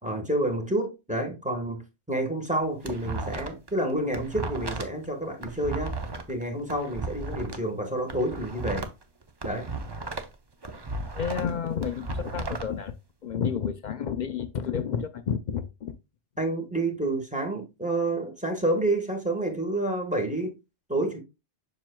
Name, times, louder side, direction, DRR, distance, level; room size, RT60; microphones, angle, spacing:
voice 1, 0.0-5.9 6.3-8.9 9.4-9.7 16.4-20.5 20.9-21.2, right 1 dB, 5° right, 1.3 m, -29 dB
sound 1, 2.5-3.7 4.0-7.6 8.0-10.3 10.6-12.7, right 3 dB, 25° right, 0.6 m, -35 dB
voice 2, 11.2-12.9 13.2-15.9, left 7 dB, 55° left, 0.5 m, -30 dB
7.3 x 6.2 x 2.2 m
omnidirectional pair, 1.2 m